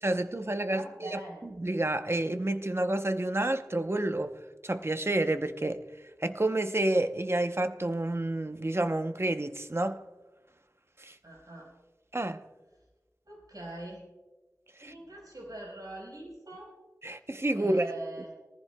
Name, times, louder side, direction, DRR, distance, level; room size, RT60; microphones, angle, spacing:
voice 1, 0.0-5.8 6.2-10.0 11.0-11.2 12.1-12.4 14.8-14.9 17.0-17.8, right 1 dB, 40° right, 0.7 m, -29 dB
voice 2, 0.7-1.5 11.2-11.7 13.3-14.0 14.8-16.8 17.6-18.3, right 2 dB, 85° right, 4.5 m, -43 dB
20.0 x 14.5 x 2.2 m
wide cardioid pair, 40°, 6 cm